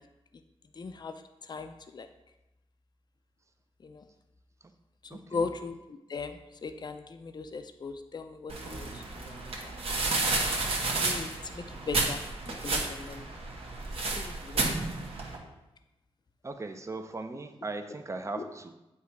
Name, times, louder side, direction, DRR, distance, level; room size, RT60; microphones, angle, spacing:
voice 1, 0.8-1.1 1.4-2.1 3.8-4.0 5.0-9.8 11.0-13.3 14.1-14.8 18.4-18.5, left 4 dB, 45° left, 8 dB, 0.5 m, -39 dB
voice 2, 5.1-5.5 16.4-18.7, right 3 dB, 30° right, 7 dB, 0.6 m, -38 dB
sound 1, 8.5-15.4, right 2 dB, 65° right, 1.2 m, -31 dB
8.2 x 2.8 x 4.7 m, 0.96 s
wide cardioid pair, 85°, 11 cm